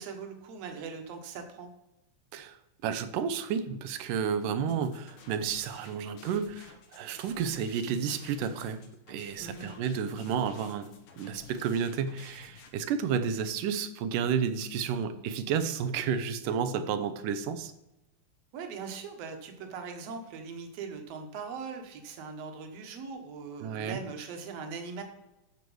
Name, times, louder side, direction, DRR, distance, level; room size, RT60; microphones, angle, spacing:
voice 1, 0.0-1.7 9.4-9.7 18.5-25.0, right 5 dB, 55° right, 4 dB, 2.2 m, -40 dB
voice 2, 2.8-8.8 9.1-17.7 23.6-24.0, right 7 dB, 80° right, 11 dB, 2.4 m, -31 dB
sound 1, 4.7-12.7, left 5 dB, 80° left, 2.9 m, -53 dB
13.5 x 4.7 x 6.2 m, 0.96 s
omnidirectional pair, 3.8 m